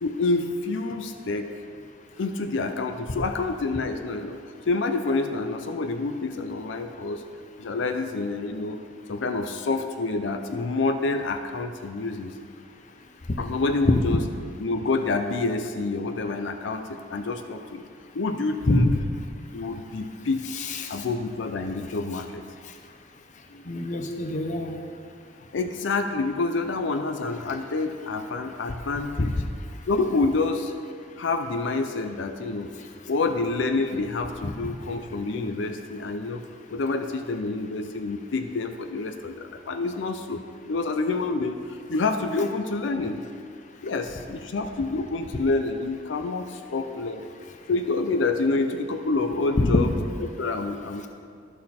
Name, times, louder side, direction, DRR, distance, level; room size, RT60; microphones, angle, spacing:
voice 1, 0.0-1.5 2.2-4.4 4.7-7.2 7.6-8.8 9.1-12.3 13.4-14.2 14.6-17.8 18.1-18.9 19.5-22.4 23.5-23.6 25.5-29.4 29.9-30.7 31.2-32.7 33.1-36.4 36.7-40.4 40.7-43.2 43.8-47.3 47.7-49.9 50.2-51.1, left 3 dB, 85° left, 7 dB, 0.5 m, -27 dB
voice 2, 20.5-20.9 23.7-24.8 29.2-29.3 49.6-49.7, left 1 dB, 40° left, 5 dB, 0.7 m, -25 dB
11.5 x 6.4 x 4.3 m, 2.2 s
head